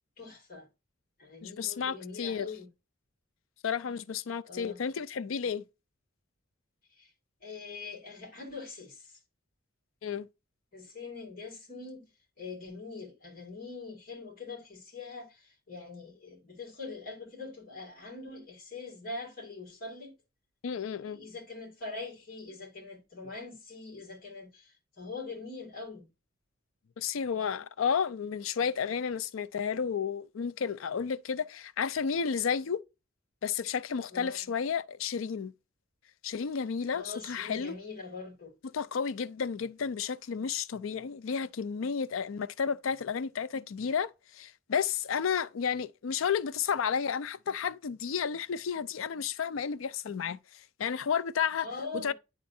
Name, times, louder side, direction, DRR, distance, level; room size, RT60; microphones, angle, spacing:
voice 1, 0.2-0.7 1.2-2.7 4.5-4.8 7.0-7.1 7.4-9.2 10.7-12.1 12.4-20.1 21.0-26.1 34.1-34.4 36.9-38.5 51.6-52.1, left 3 dB, 45° left, 2.1 m, -43 dB
voice 2, 1.4-2.5 3.6-5.6 10.0-10.3 20.6-21.2 27.0-32.8 33.4-35.5 36.2-37.8 38.7-51.7 51.9-52.1, left 6 dB, 70° left, 0.4 m, -32 dB
10.0 x 3.7 x 2.6 m
head